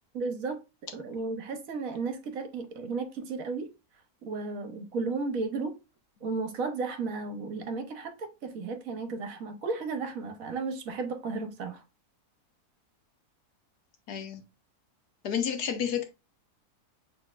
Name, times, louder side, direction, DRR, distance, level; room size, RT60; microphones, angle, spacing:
voice 1, 0.1-0.6 0.9-3.7 4.2-5.8 6.2-11.8, right 4 dB, 65° right, 1.3 m, -34 dB
voice 2, 14.1-14.4 15.2-16.0, left 8 dB, 80° left, 1.4 m, -30 dB
6.2 x 3.4 x 2.4 m
omnidirectional pair, 1.7 m